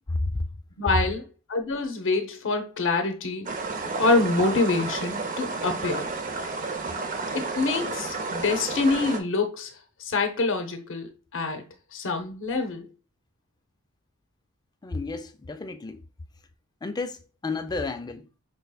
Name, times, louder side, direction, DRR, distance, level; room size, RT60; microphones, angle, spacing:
voice 1, 0.1-0.5 14.8-16.0 16.8-18.3, left 3 dB, 20° left, 0.3 m, -31 dB
voice 2, 0.8-1.2 1.5-3.5 4.0-6.1 7.3-9.7 10.0-11.6 11.9-12.9, left 3 dB, 60° left, 0.6 m, -26 dB
sound 1, 3.5-9.2, right 3 dB, 35° right, 0.6 m, -31 dB
5.3 x 3.4 x 2.2 m
head